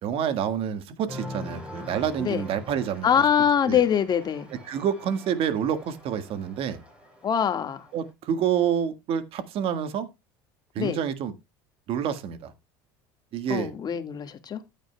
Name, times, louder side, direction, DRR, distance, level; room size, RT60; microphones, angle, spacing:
voice 1, 0.0-3.2 3.6-3.8 4.5-6.8 7.9-10.1 10.7-11.3 11.9-12.5 13.3-13.7, right 8 dB, 55° right, 1.6 m, -28 dB
Cheering, 1.1-8.1, left 1 dB, 10° right, 7.2 m, -43 dB
voice 2, 3.0-4.5 7.2-7.8 10.8-11.0 13.5-14.6, left 8 dB, 35° left, 1.7 m, -24 dB
14.0 x 9.1 x 2.2 m
supercardioid pair, 90°, 12 cm